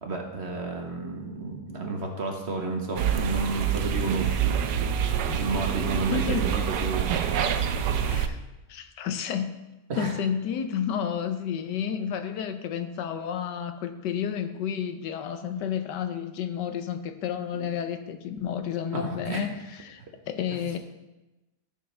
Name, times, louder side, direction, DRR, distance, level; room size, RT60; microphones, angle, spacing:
voice 1, 0.0-4.5 5.3-7.1 9.9-10.1 17.6-17.7 18.9-19.5 20.5-20.6, right 3 dB, 45° right, 2 dB, 1.3 m, -31 dB
sound 1, 3.0-8.3, right 8 dB, 90° right, 1.3 m, -26 dB
voice 2, 6.1-6.6 8.1-8.4 8.7-9.6 10.0-20.0 20.3-20.8, left 8 dB, 85° left, 9 dB, 1.4 m, -31 dB
13.5 x 6.9 x 3.3 m, 1.0 s
omnidirectional pair, 1.8 m